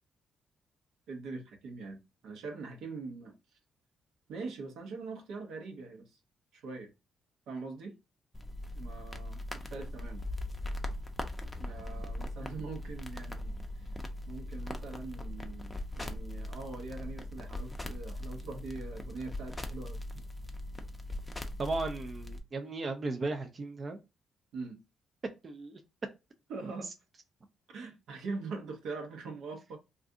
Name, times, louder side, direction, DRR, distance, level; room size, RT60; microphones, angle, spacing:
voice 1, 1.1-3.3 4.3-6.2 6.5-6.9 7.5-7.9 8.7-10.3 11.6-13.9 14.3-20.0 24.5-24.8 26.5-26.9 27.7-29.8, right 3 dB, 80° right, 3 dB, 0.9 m, -42 dB
sound 1, 8.3-22.4, left 1 dB, 10° left, 0.5 m, -40 dB
voice 2, 21.6-24.0 25.4-25.8, right 3 dB, 40° right, 5 dB, 0.4 m, -36 dB
2.5 x 2.4 x 3.6 m, 0.26 s
cardioid pair, 90°, 0 cm